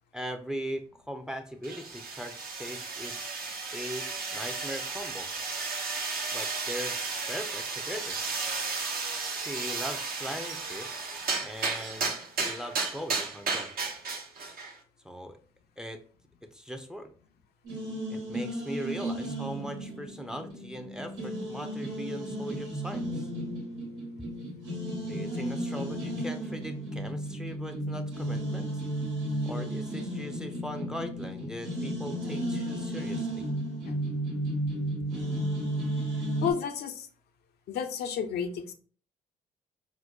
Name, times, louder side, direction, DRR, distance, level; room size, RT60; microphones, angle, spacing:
voice 1, 0.1-3.3 3.7-5.3 6.3-7.0 7.3-8.2 9.4-13.7 15.0-15.4 15.8-16.0 16.4-17.1 18.1-23.3 25.0-28.8 29.5-33.4, equal, 5° right, 7 dB, 0.5 m, -40 dB
sound 1, 1.6-14.8, right 4 dB, 55° right, 0.8 m, -34 dB
sound 2, 17.6-36.5, right 1 dB, 85° right, 1.3 m, -34 dB
voice 2, 36.4-37.1 37.7-38.7, left 7 dB, 65° left, 7 dB, 0.5 m, -31 dB
4.4 x 2.1 x 2.5 m, 0.42 s
hypercardioid pair, 50°, 18 cm